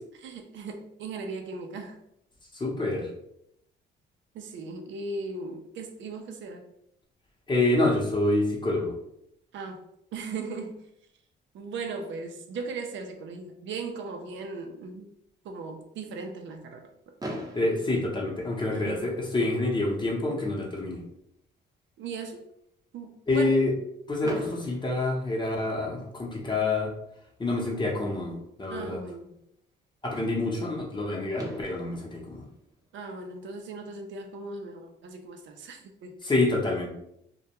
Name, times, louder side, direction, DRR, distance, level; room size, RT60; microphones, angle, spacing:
voice 1, 0.2-2.0 4.3-6.7 9.5-10.8 11.5-15.1 15.4-16.9 18.7-19.0 22.0-22.5 22.9-23.5 24.2-24.4 28.7-29.4 32.9-36.2, right 4 dB, 70° right, 4 dB, 0.4 m, -38 dB
voice 2, 2.5-3.1 7.5-9.0 17.5-21.0 23.3-23.7 24.1-26.9 27.4-29.0 30.0-32.4 36.2-36.9, left 2 dB, 25° left, -2 dB, 0.7 m, -27 dB
Fireworks, 17.2-19.2 20.0-20.1 20.3-20.5 20.8-20.9 24.2-26.1 27.8-27.9 30.9-31.0 31.4-33.7, equal, 20° right, 0.6 m, -41 dB
2.2 x 2.2 x 2.8 m, 0.77 s
cardioid pair, 90°, 20 cm